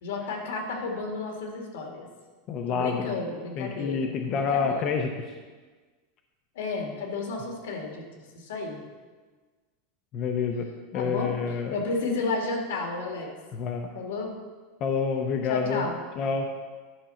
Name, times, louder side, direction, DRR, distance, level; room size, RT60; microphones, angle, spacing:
voice 1, 0.0-2.1 2.7-4.8 6.6-8.0 8.4-8.8 10.9-11.4 11.7-13.3 13.9-14.3 15.5-16.0, left 3 dB, 85° left, 1 dB, 2.2 m, -32 dB
voice 2, 2.5-3.1 3.6-5.3 10.1-10.7 10.9-11.7 13.5-13.9 14.8-15.9 16.2-16.5, left 5 dB, 30° left, 3 dB, 0.6 m, -28 dB
11.5 x 5.3 x 5.7 m, 1.4 s
supercardioid pair, 175°, 0 cm